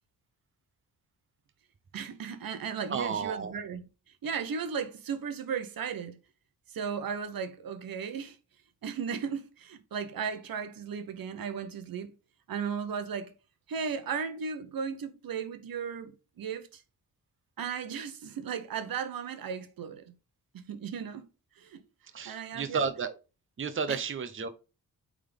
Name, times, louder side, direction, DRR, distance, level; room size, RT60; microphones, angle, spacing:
voice 1, 1.9-3.8 4.2-6.2 6.7-8.4 8.8-12.1 12.5-13.3 13.7-16.8 17.6-20.1 20.5-21.2 21.6-21.8 22.2-22.9 23.9-24.0, right 6 dB, 70° right, 1.1 m, -36 dB
voice 2, 2.9-3.5 22.1-23.1 23.6-24.5, right 5 dB, 35° right, 0.9 m, -32 dB
8.4 x 3.8 x 3.5 m
cardioid pair, 75°, 36 cm